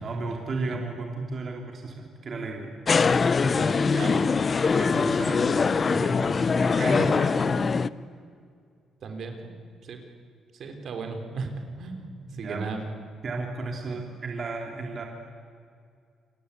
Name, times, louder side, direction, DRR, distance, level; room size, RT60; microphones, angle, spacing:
voice 1, 0.0-2.8 3.4-4.0 4.5-7.8 12.2-12.7 13.2-15.0, right 3 dB, 45° right, 1 dB, 3.2 m, -34 dB
sound 1, 2.9-7.9, left 5 dB, 40° left, 0.7 m, -23 dB
voice 2, 3.9-4.3 9.0-9.5 9.9-10.0 10.6-11.5 11.8-12.1 12.4-12.8 13.8-14.0, right 4 dB, 65° right, 5 dB, 3.9 m, -35 dB
28.0 x 22.0 x 8.4 m, 2.3 s
cardioid pair, 90°, 0 cm